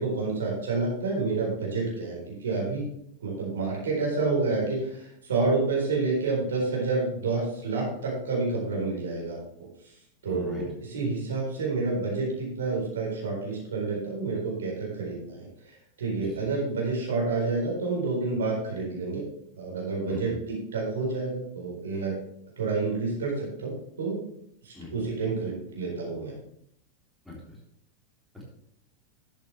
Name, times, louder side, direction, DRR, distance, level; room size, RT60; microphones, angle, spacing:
voice 1, 0.0-2.8 3.2-9.4 10.2-15.5 16.0-19.2 19.6-22.1 22.6-23.7 24.0-24.2 24.6-26.3, right 3 dB, 65° right, -2 dB, 4.3 m, -29 dB
voice 2, 10.2-10.6 16.1-16.5 20.0-20.3 24.7-24.9 27.3-27.6 28.3-28.4, left 3 dB, ahead, -5 dB, 3.7 m, -42 dB
12.0 x 8.2 x 3.4 m, 0.74 s
figure-of-eight pair, 90°, 0 cm